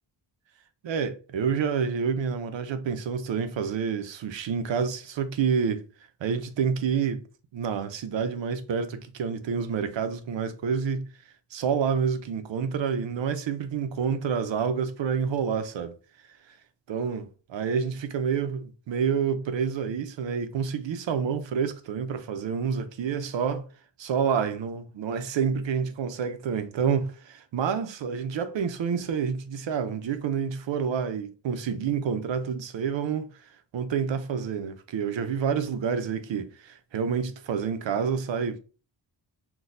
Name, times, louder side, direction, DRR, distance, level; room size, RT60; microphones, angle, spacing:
voice 1, 0.8-5.9 6.2-7.2 7.5-11.1 11.5-16.0 16.9-23.7 24.0-33.3 33.7-38.6, right 6 dB, 75° right, 0.7 m, -28 dB
5.9 x 2.2 x 2.6 m
wide cardioid pair, 175°, 45 cm